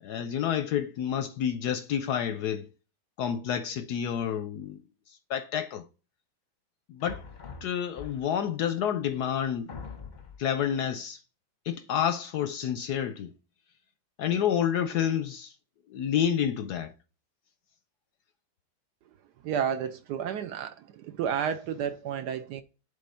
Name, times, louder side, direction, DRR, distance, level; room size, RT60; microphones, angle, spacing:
voice 1, 0.0-2.7 3.2-4.8 5.1-5.8 6.9-7.2 7.6-9.8 10.4-11.2 11.6-13.3 14.2-15.5 15.9-16.9, left 9 dB, 70° left, 1.0 m, -29 dB
sound 1, 7.0-8.5 9.2-9.3 9.7-10.5, left 5 dB, 40° left, 0.7 m, -43 dB
voice 2, 19.4-22.6, right 8 dB, 75° right, 1.0 m, -31 dB
7.8 x 3.4 x 5.4 m
omnidirectional pair, 2.1 m